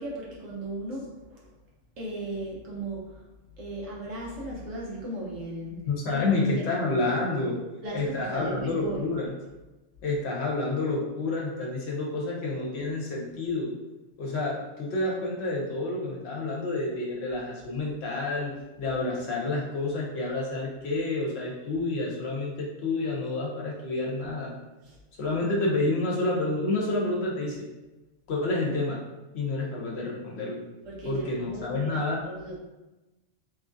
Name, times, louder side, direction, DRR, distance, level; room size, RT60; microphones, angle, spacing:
voice 1, 0.0-1.5 2.0-3.0 3.6-5.8 6.1-6.2 6.6-6.7 7.8-9.0 24.9-25.0 30.8-32.6, right 1 dB, 90° right, -4 dB, 1.2 m, -36 dB
voice 2, 5.9-7.6 7.9-9.4 10.0-13.7 14.2-18.5 18.8-24.5 25.2-27.6 28.3-29.0 29.3-30.6 31.0-32.2, left 2 dB, 65° left, -2 dB, 0.8 m, -29 dB
2.9 x 2.3 x 2.5 m, 1.1 s
omnidirectional pair, 1.3 m